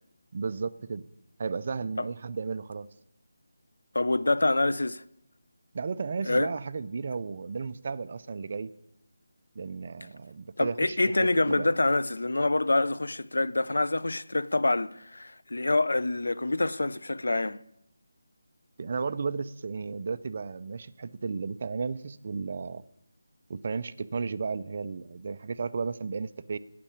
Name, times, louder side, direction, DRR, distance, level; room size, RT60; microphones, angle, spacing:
voice 1, 0.3-1.0 1.4-2.9 5.7-8.7 9.6-11.7 18.8-22.8 23.5-26.6, right 5 dB, 35° right, 0.4 m, -34 dB
voice 2, 3.9-5.0 6.3-6.5 10.6-17.6, left 2 dB, 85° left, 0.5 m, -26 dB
8.5 x 8.1 x 8.6 m
figure-of-eight pair, 175°, 0 cm